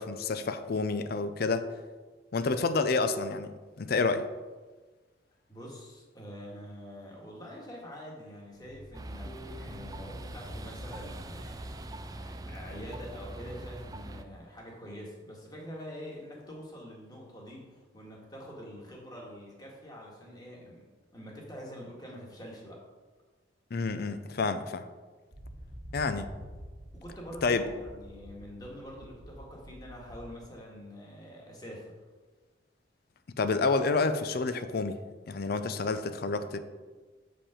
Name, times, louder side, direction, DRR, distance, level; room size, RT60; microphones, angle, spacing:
voice 1, 0.0-1.7 2.3-4.3 23.7-24.8 25.9-26.3 27.4-27.7 33.4-35.0 35.3-36.6, left 4 dB, 55° left, 11 dB, 0.5 m, -29 dB
voice 2, 5.5-22.8 26.9-32.0, equal, 20° left, -2 dB, 1.7 m, -45 dB
sound 1, 8.5-13.2, left 1 dB, 80° left, 1.8 m, -50 dB
sound 2, 8.9-14.2, right 1 dB, 20° right, 0.4 m, -42 dB
sound 3, 25.3-30.4, equal, 80° right, 2.2 m, -48 dB
7.2 x 5.2 x 5.0 m, 1.3 s
head